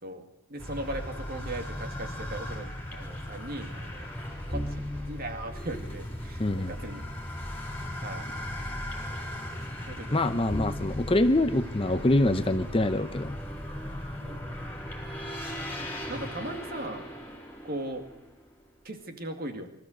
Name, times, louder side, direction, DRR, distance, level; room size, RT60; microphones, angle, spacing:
voice 1, 0.0-4.1 4.5-7.0 8.0-8.7 9.9-10.4 14.2-14.4 16.1-17.0 17.6-18.0 18.8-19.7, right 1 dB, 45° right, 6 dB, 2.3 m, -38 dB
sound 1, 0.6-18.5, equal, 10° left, 4.0 m, -37 dB
voice 2, 6.4-6.7 10.1-13.4, left 1 dB, 25° left, 10 dB, 0.7 m, -25 dB
24.0 x 13.5 x 7.9 m, 0.81 s
head